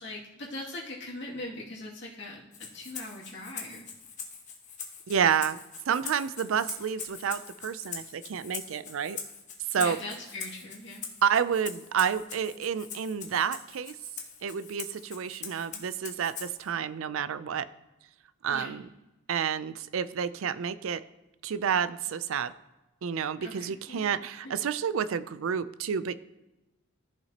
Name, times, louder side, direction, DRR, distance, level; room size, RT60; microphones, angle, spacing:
voice 1, 0.0-3.9 9.8-11.0 18.5-18.8 23.4-24.1 24.4-24.5, left 2 dB, 60° left, -5 dB, 2.3 m, -41 dB
Rattle (instrument), 2.5-16.7, left 6 dB, 35° left, 1.1 m, -43 dB
voice 2, 5.1-5.6 5.9-9.2 9.7-10.0 11.2-14.0 14.4-17.7 18.4-18.9 19.3-21.0 21.4-22.5 23.0-26.1, right 7 dB, 75° right, 15 dB, 0.4 m, -29 dB
13.5 x 5.8 x 2.9 m, 0.99 s
head